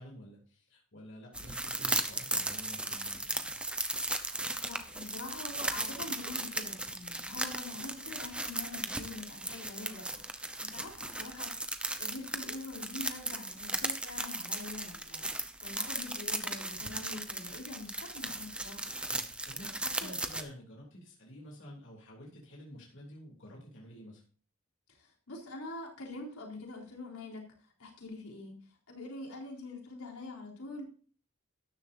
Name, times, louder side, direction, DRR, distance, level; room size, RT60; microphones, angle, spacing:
voice 1, 0.0-3.6 19.1-24.2, equal, 60° left, -2 dB, 3.1 m, -50 dB
sound 1, 1.3-20.4, right 2 dB, 5° right, 0.8 m, -37 dB
voice 2, 4.6-10.3 10.6-18.9 19.6-20.1 24.9-28.6 28.9-30.8, left 2 dB, 85° left, -1 dB, 4.0 m, -45 dB
13.0 x 10.5 x 2.7 m, 0.41 s
head